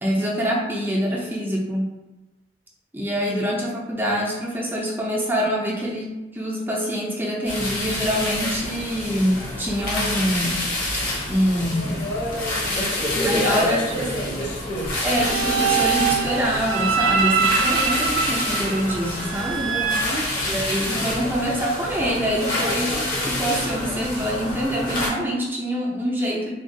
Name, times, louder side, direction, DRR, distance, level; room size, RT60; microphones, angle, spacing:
voice 1, 0.0-1.9 2.9-10.7 11.3-12.1 13.2-13.9 15.0-19.8 20.5-23.0 23.2-26.5, equal, 10° right, -3 dB, 0.5 m, -25 dB
sound 1, 7.4-25.1, left 1 dB, 50° left, 1.0 m, -27 dB
voice 2, 11.6-14.6 19.6-20.3, equal, 80° left, -2 dB, 0.8 m, -31 dB
sound 2, 15.0-21.0, right 6 dB, 90° right, 0.4 m, -24 dB
3.5 x 2.3 x 2.6 m, 1.1 s
head